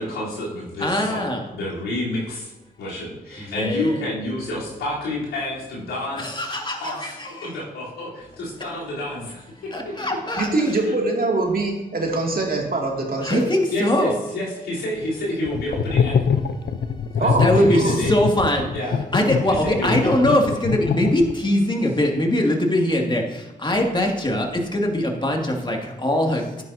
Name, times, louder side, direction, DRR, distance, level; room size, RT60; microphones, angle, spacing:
voice 1, 0.0-2.5 2.8-6.4 6.8-9.5 10.8-11.0 13.7-16.2 17.2-18.2 18.7-19.0 19.6-20.4, left 1 dB, 90° left, -8 dB, 3.7 m, -29 dB
voice 2, 0.8-1.4 3.4-4.0 6.2-7.5 9.7-10.5 13.2-14.1 17.0-17.1 17.4-18.8 19.1-26.6, left 1 dB, 25° left, 1 dB, 2.3 m, -22 dB
voice 3, 10.4-13.4 17.2-18.0, right 2 dB, 50° right, 0 dB, 2.5 m, -23 dB
sound 1, 15.5-21.5, left 6 dB, 60° left, 0.7 m, -23 dB
10.5 x 9.2 x 2.8 m, 0.99 s
supercardioid pair, 40°, 20 cm